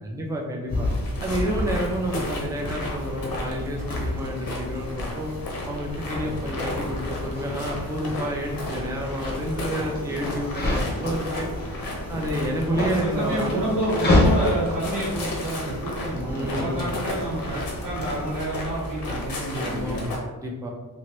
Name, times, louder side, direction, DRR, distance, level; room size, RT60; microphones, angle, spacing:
voice 1, 0.0-0.9 1.2-5.3 5.6-11.5 12.1-13.7 16.3-16.9 19.6-20.7, equal, 10° right, -1 dB, 0.4 m, -29 dB
sound 1, 0.7-18.4, left 1 dB, 25° left, 0.7 m, -30 dB
sound 2, 0.8-20.2, left 1 dB, 70° left, 0.8 m, -33 dB
voice 2, 12.7-20.0, right 1 dB, 65° right, -6 dB, 1.0 m, -29 dB
3.1 x 2.5 x 2.9 m, 1.2 s
wide cardioid pair, 125°, 36 cm